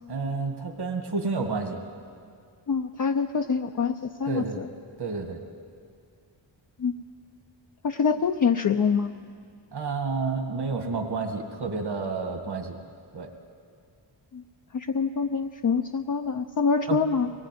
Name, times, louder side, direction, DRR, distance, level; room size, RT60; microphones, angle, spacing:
voice 1, 0.1-1.8 4.3-4.6 5.0-5.4 9.7-12.7 13.1-13.3 16.9-17.0, right 4 dB, 60° right, 3 dB, 2.2 m, -30 dB
voice 2, 2.7-3.9 4.2-4.7 6.8-6.9 7.8-9.2 14.3-14.4 14.7-17.3, left 5 dB, 45° left, 5 dB, 0.6 m, -25 dB
23.5 x 19.5 x 9.4 m, 2.2 s
wide cardioid pair, 165°, 45 cm